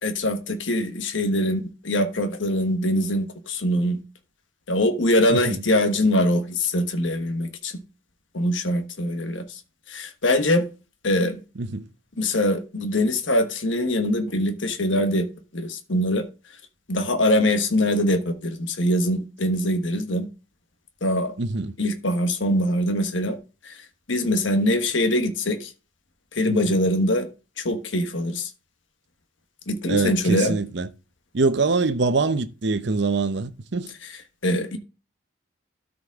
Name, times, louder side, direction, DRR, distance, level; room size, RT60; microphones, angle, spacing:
voice 1, 0.0-4.0 4.7-7.7 8.3-9.6 9.9-10.7 11.0-11.4 12.2-15.3 15.5-16.3 16.9-20.3 21.0-21.3 21.8-23.4 23.6-23.8 24.1-25.7 26.3-27.3 27.6-28.5 29.7-30.6 34.4-34.8, left 1 dB, 80° left, 1.3 m, -23 dB
voice 2, 5.3-5.6 11.6-11.9 21.4-21.7 26.5-26.6 29.9-30.9 31.3-33.9, right 3 dB, 65° right, 0.8 m, -24 dB
13.0 x 5.1 x 3.6 m
head